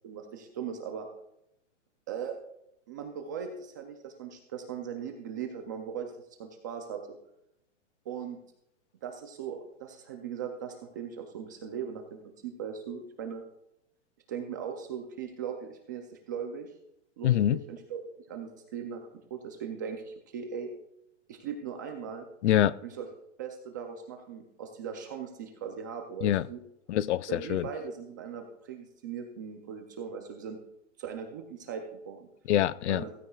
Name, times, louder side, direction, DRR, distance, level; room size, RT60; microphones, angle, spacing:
voice 1, 0.0-1.1 2.1-2.4 2.9-6.1 6.4-7.2 8.1-8.4 9.0-13.4 14.3-16.7 17.2-18.0 18.3-20.7 21.3-22.3 22.8-23.1 23.4-26.6 27.3-30.6 31.0-32.3 32.9-33.1, right 7 dB, 15° right, 0.4 m, -39 dB
voice 2, 17.2-17.6 22.4-22.7 26.2-26.4 26.9-27.7 32.5-33.0, left 12 dB, 65° left, 0.5 m, -25 dB
16.0 x 14.0 x 2.3 m
hypercardioid pair, 160°, 38 cm